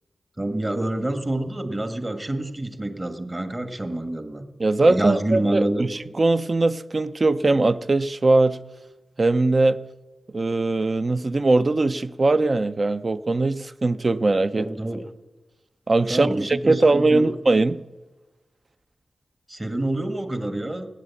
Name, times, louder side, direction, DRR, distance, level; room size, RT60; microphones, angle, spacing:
voice 1, 0.4-4.5 4.8-5.8 14.5-15.0 16.1-17.3 19.5-20.9, right 1 dB, 25° right, 1.6 m, -27 dB
voice 2, 4.6-8.6 9.2-9.8 10.3-14.7 15.9-17.8, right 2 dB, 40° right, 0.6 m, -20 dB
17.5 x 9.1 x 8.4 m
wide cardioid pair, 85°, 0 cm